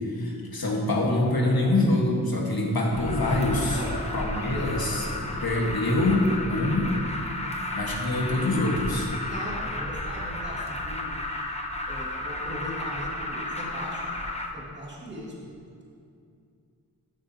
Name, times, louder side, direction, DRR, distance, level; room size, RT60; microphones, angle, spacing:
voice 1, 0.1-3.8 4.1-5.1 5.4-6.9 7.7-9.1, left 2 dB, 60° left, -1 dB, 1.6 m, -25 dB
Alarm, 2.9-14.5, left 1 dB, 15° left, 0.8 m, -33 dB
voice 2, 4.4-4.8 5.0-5.7 9.3-11.2 11.9-15.3, equal, 25° right, -6 dB, 2.4 m, -39 dB
14.0 x 6.9 x 2.9 m, 2.4 s
wide cardioid pair, 60°, 40 cm